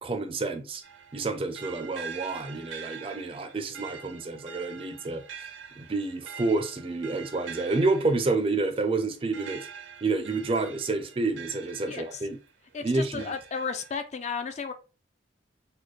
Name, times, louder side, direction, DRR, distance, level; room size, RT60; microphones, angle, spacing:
voice 1, 0.0-0.8 1.1-5.2 5.8-9.7 10.0-12.4 12.8-13.3, right 3 dB, 30° right, 0.4 m, -29 dB
sound 1, 0.8-12.5 13.0-14.0, right 6 dB, 80° right, 0.6 m, -45 dB
voice 2, 11.9-12.2 12.7-14.7, left 5 dB, 35° left, 0.3 m, -34 dB
4.1 x 2.2 x 3.1 m
head